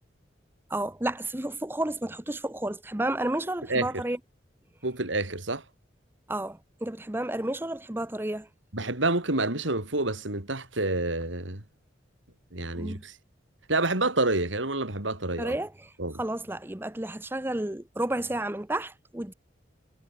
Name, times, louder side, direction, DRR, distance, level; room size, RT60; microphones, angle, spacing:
voice 1, 0.7-4.2 6.3-8.5 12.7-13.0 15.4-15.9 16.2-19.3, right 1 dB, 10° right, 0.7 m, -31 dB
voice 2, 4.8-5.6 8.7-11.6 12.5-13.2 13.7-15.5 16.0-16.2, right 2 dB, 80° right, 3.9 m, -28 dB
head